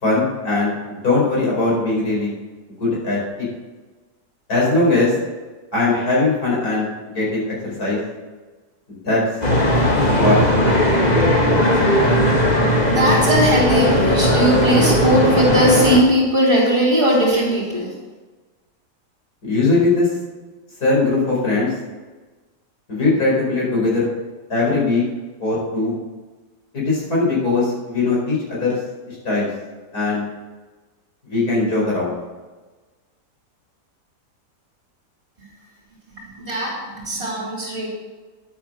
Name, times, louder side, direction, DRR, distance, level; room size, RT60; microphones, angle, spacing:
voice 1, 0.0-2.3 2.8-3.5 4.5-5.1 5.7-6.9 7.1-8.0 9.0-9.2 10.1-10.7 19.4-20.1 20.8-21.7 22.9-24.1 24.5-25.0 25.4-26.0 26.7-28.8 29.1-29.5 29.9-30.2 31.3-32.2, left 3 dB, 60° left, -5 dB, 5.2 m, -20 dB
sound 1, 9.4-16.0, equal, 25° left, 1.6 m, -17 dB
voice 2, 12.9-17.9 36.2-37.9, right 1 dB, 35° right, -8 dB, 3.8 m, -19 dB
10.5 x 8.5 x 6.5 m, 1.3 s
omnidirectional pair, 1.8 m